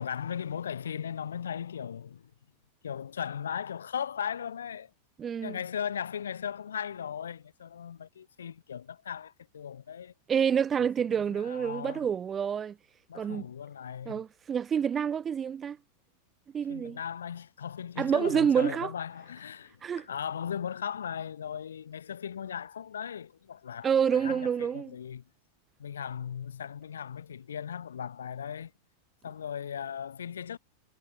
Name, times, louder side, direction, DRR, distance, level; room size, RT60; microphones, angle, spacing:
voice 1, 0.0-2.3 2.8-4.9 5.4-10.1 11.2-12.1 13.1-14.2 16.7-25.2 25.8-28.7 29.2-30.6, left 8 dB, 65° left, 5.7 m, -37 dB
voice 2, 5.2-5.6 10.3-12.8 13.1-13.4 14.1-15.8 16.5-17.0 18.0-18.9 19.8-20.1 23.8-24.9, right 8 dB, 20° right, 0.7 m, -28 dB
figure-of-eight pair, 90°, 0 cm